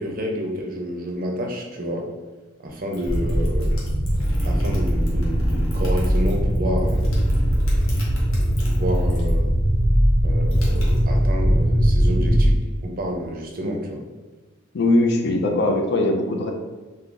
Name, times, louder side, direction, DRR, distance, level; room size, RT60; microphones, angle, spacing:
voice 1, 0.0-2.1 2.6-3.8 4.4-7.5 8.8-9.5 10.2-12.5 12.8-14.0, equal, 45° right, 1 dB, 0.5 m, -29 dB
sound 1, 2.9-9.5 9.7-11.6, left 1 dB, 80° left, 0.9 m, -36 dB
sound 2, 3.0-12.5, equal, 5° left, 1.0 m, -20 dB
voice 2, 14.7-16.5, left 2 dB, 55° left, 2 dB, 0.4 m, -21 dB
2.6 x 2.4 x 3.8 m, 1.3 s
head